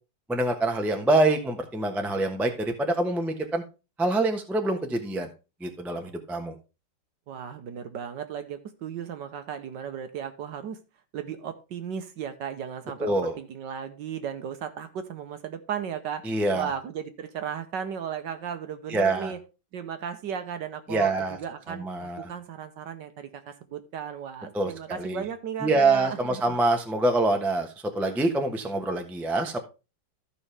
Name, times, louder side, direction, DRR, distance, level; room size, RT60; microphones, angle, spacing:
voice 1, 0.3-3.6 4.0-5.3 5.6-6.5 13.0-13.4 16.2-16.7 18.9-19.3 20.9-21.4 21.8-22.3 24.5-25.2 25.6-27.7 27.9-29.6, right 2 dB, ahead, 0.5 m, -25 dB
voice 2, 7.3-10.8 11.1-19.4 19.7-26.6, right 8 dB, 65° right, 1.3 m, -35 dB
14.0 x 5.4 x 3.3 m
omnidirectional pair, 2.4 m